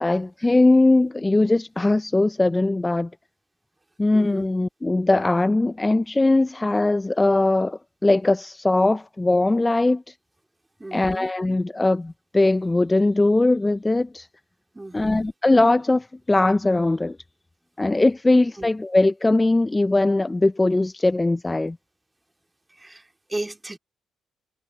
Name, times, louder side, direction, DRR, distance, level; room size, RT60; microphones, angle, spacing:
voice 1, 0.0-3.1 4.0-10.1 10.9-14.3 14.9-17.2 17.8-21.8, left 2 dB, 15° left, 0.3 m, -20 dB
voice 2, 4.1-4.5 10.8-11.3 14.7-15.2 18.6-18.7 22.8-23.0 23.3-23.8, right 2 dB, 15° right, 2.6 m, -34 dB
cardioid pair, 90°, 0 cm